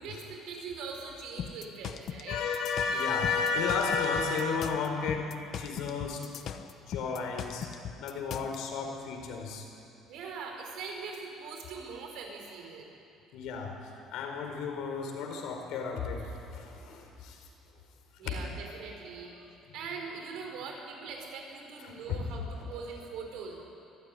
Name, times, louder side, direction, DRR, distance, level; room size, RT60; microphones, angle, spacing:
voice 1, 0.0-2.4 10.1-12.9 18.2-23.6, right 5 dB, 70° right, 2 dB, 5.2 m, -42 dB
sound 1, 1.4-8.6, left 8 dB, 50° left, 1.0 m, -39 dB
voice 2, 2.3-6.4 6.8-7.7 8.0-9.7 13.3-13.8 14.1-17.5 21.8-22.3, left 5 dB, 70° left, 3 dB, 4.5 m, -33 dB
24.5 x 15.0 x 10.0 m, 2.7 s
cardioid pair, 155°, 0 cm